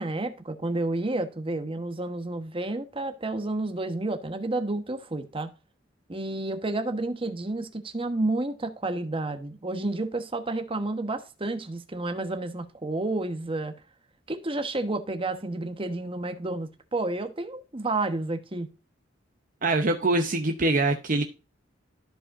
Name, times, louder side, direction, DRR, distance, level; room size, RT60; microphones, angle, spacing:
voice 1, 0.0-5.5 6.1-13.7 14.3-18.7, right 2 dB, 30° right, 1.2 m, -30 dB
voice 2, 19.6-21.2, right 2 dB, 45° right, 0.8 m, -24 dB
14.0 x 5.0 x 2.6 m
head